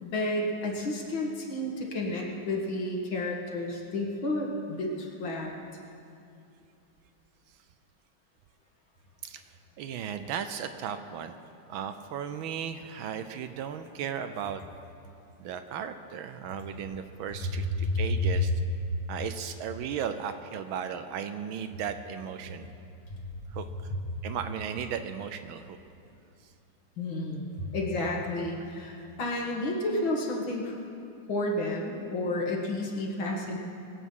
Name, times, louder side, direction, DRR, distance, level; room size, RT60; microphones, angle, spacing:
voice 1, 0.0-5.5 17.8-18.4 23.1-23.2 27.0-27.4 27.7-30.8 31.3-33.6, left 1 dB, 65° left, -1 dB, 2.5 m, -31 dB
voice 2, 9.8-11.3 11.7-14.6 15.4-18.5 19.1-22.7 23.5-23.9 24.2-25.8 28.6-28.7, right 8 dB, 75° right, 9 dB, 1.4 m, -36 dB
21.5 x 8.4 x 5.5 m, 2.6 s
omnidirectional pair, 2.4 m